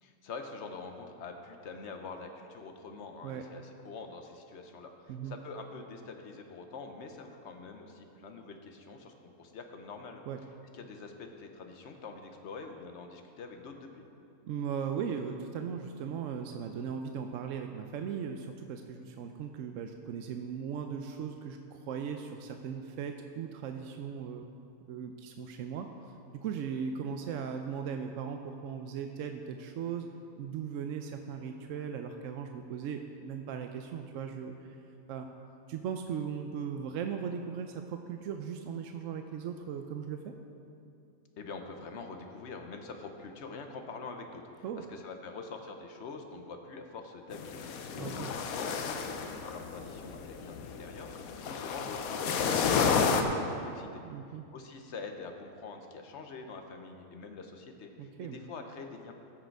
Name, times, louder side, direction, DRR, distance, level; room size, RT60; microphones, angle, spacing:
voice 1, 0.0-10.2 10.7-14.0 41.4-54.0 54.5-59.1, left 4 dB, 55° left, 5 dB, 1.1 m, -45 dB
voice 2, 14.5-24.5 24.9-25.9 26.3-30.1 30.4-34.7 35.1-35.3 35.7-40.3 44.6-44.8 48.0-48.3 54.0-54.4 58.0-58.4, right 7 dB, 70° right, 5 dB, 0.9 m, -38 dB
sound 1, 47.3-53.2, left 6 dB, 75° left, 1.1 m, -31 dB
14.5 x 6.6 x 4.6 m, 2.6 s
omnidirectional pair, 1.5 m